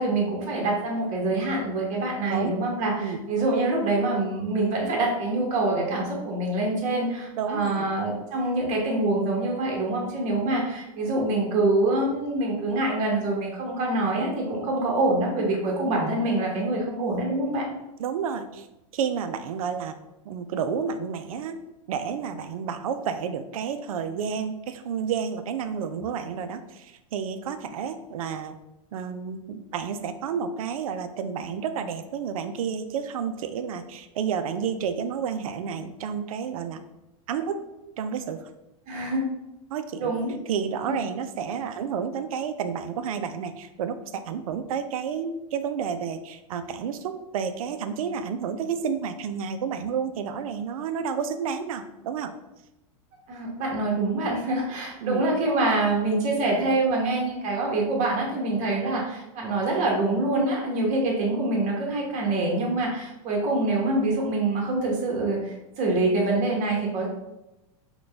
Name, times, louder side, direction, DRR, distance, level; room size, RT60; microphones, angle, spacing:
voice 1, 0.0-17.7 38.9-39.2 40.0-40.3 40.8-41.0 53.3-67.1, right 2 dB, 45° right, -1 dB, 1.1 m, -25 dB
voice 2, 7.4-7.9 18.0-18.7 18.9-20.0 20.3-21.6 21.9-28.6 28.9-36.8 37.3-37.6 38.0-38.5 39.7-40.1 40.5-52.3 55.0-55.3, right 7 dB, 85° right, 10 dB, 0.4 m, -30 dB
3.9 x 2.3 x 3.3 m, 0.95 s
hypercardioid pair, 125°, 18 cm